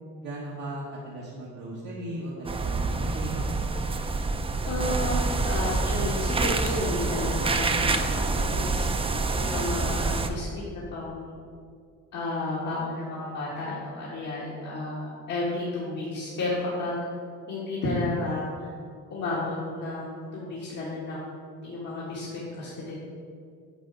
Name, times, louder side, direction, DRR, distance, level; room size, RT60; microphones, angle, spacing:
voice 1, 0.2-3.4, right 1 dB, 85° right, -6 dB, 1.2 m, -37 dB
sound 1, 2.4-10.3, right 3 dB, 20° right, 0.4 m, -27 dB
voice 2, 4.6-8.9 9.3-11.3 12.1-17.0 17.5-18.7 19.1-21.2 21.6-23.0, left 2 dB, 75° left, -7 dB, 1.7 m, -32 dB
8.6 x 4.5 x 3.9 m, 2.2 s
cardioid pair, 90°, 30 cm